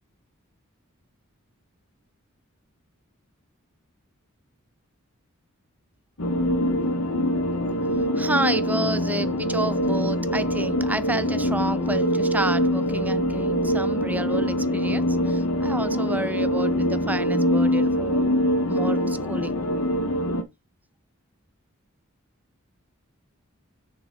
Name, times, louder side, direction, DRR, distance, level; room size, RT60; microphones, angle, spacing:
sound 1, 6.2-20.4, equal, 90° left, 1.3 m, -24 dB
voice 1, 8.2-18.3 18.7-19.7, right 1 dB, 10° right, 0.5 m, -30 dB
7.2 x 6.4 x 3.7 m
head